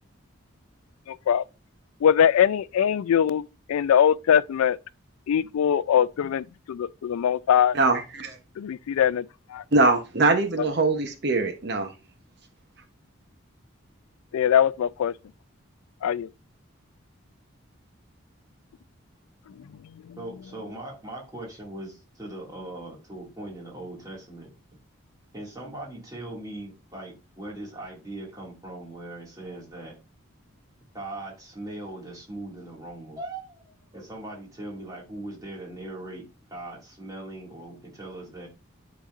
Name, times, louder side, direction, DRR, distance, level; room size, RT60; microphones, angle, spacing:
voice 1, 1.1-1.4 2.0-4.8 5.3-7.8 8.6-9.6 14.3-15.1 16.0-16.3, left 8 dB, 90° left, 0.3 m, -22 dB
voice 2, 7.7-8.4 9.7-11.9, right 3 dB, 50° right, 0.8 m, -22 dB
voice 3, 20.2-24.5 25.3-30.0 30.9-36.2 36.5-38.5, right 1 dB, 15° right, 2.1 m, -39 dB
10.0 x 4.0 x 2.5 m
head